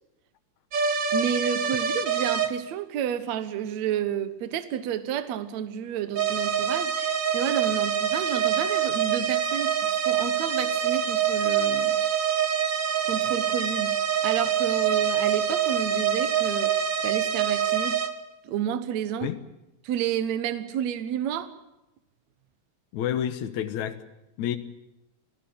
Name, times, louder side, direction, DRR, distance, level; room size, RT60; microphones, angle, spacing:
sound 1, 0.7-2.5 6.2-18.1, right 8 dB, 45° right, 1.9 m, -25 dB
voice 1, 1.1-12.0 13.1-14.0 14.2-16.7 17.0-18.0 18.4-19.3 19.8-21.5, right 9 dB, 70° right, 12 dB, 2.3 m, -30 dB
voice 2, 22.9-24.0 24.4-24.6, left 10 dB, 75° left, 9 dB, 2.6 m, -29 dB
27.0 x 17.5 x 8.6 m, 0.93 s
omnidirectional pair, 3.4 m